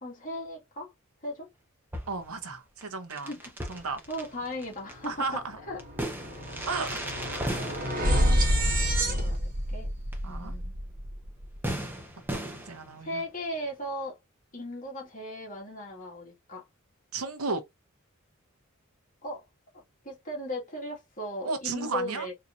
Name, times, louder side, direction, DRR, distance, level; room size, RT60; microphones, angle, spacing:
voice 1, 0.0-0.9 1.2-1.5 3.2-3.6 4.1-5.8 7.5-8.5 9.1-9.9 10.3-10.8 13.0-14.2 14.5-16.7 19.2-19.4 19.7-22.3, left 1 dB, 40° left, 1.7 m, -37 dB
sound 1, 1.9-2.4 2.8-2.9 3.1-5.1 5.8-9.3 10.1-10.2 10.6-10.7 11.6-13.2, right 1 dB, 10° right, 0.8 m, -37 dB
voice 2, 2.1-3.3 3.7-4.0 5.1-5.6 6.7-7.5 10.2-10.5 12.3-13.2 17.1-17.6 21.4-22.3, right 4 dB, 80° right, 0.8 m, -34 dB
sound 2, 4.9-5.0 5.3-11.6, equal, 40° right, 1.1 m, -28 dB
4.1 x 2.8 x 2.5 m
head